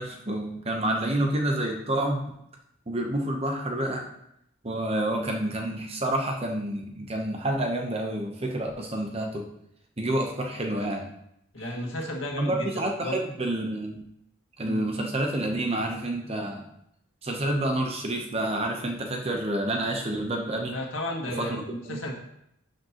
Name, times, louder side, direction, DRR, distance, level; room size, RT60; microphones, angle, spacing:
voice 1, 0.0-2.4 2.9-4.1 4.6-9.5 10.0-11.1 12.4-14.0 14.6-16.7 17.2-20.8 21.4-22.0, right 1 dB, 30° right, 2 dB, 0.8 m, -28 dB
voice 2, 11.5-13.2 14.6-14.8 20.7-22.1, left 1 dB, 70° left, -1 dB, 1.8 m, -33 dB
11.5 x 5.2 x 3.0 m, 0.77 s
head